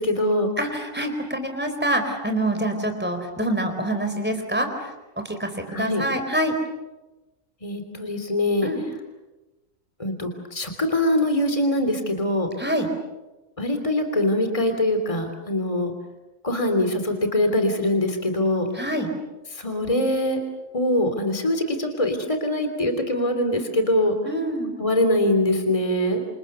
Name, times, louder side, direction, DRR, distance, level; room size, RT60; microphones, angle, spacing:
voice 1, 0.0-0.5 5.7-6.1 7.6-8.7 10.0-12.5 13.6-15.9 16.4-18.7 19.6-20.4 20.7-24.1 24.8-26.2, left 1 dB, 25° left, 6 dB, 3.3 m, -23 dB
voice 2, 0.6-4.9 5.2-6.5 8.6-8.8 12.6-12.9 18.7-19.1 24.2-24.7, right 1 dB, 5° right, 6 dB, 4.3 m, -26 dB
28.5 x 28.0 x 6.9 m, 1.1 s
omnidirectional pair, 1.4 m